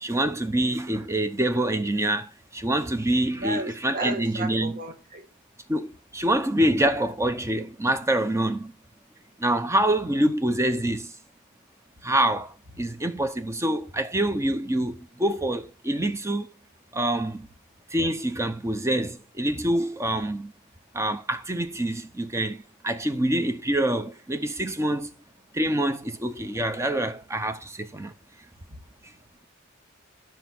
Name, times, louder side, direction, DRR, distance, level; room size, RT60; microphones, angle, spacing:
voice 1, 0.0-4.8 5.7-8.8 9.4-11.1 12.0-16.5 16.9-17.5 17.9-20.5 20.9-25.1 25.5-28.1, right 1 dB, 15° right, 0.7 m, -26 dB
voice 2, 3.4-5.2, right 2 dB, 40° right, 1.5 m, -33 dB
10.5 x 4.5 x 6.1 m
head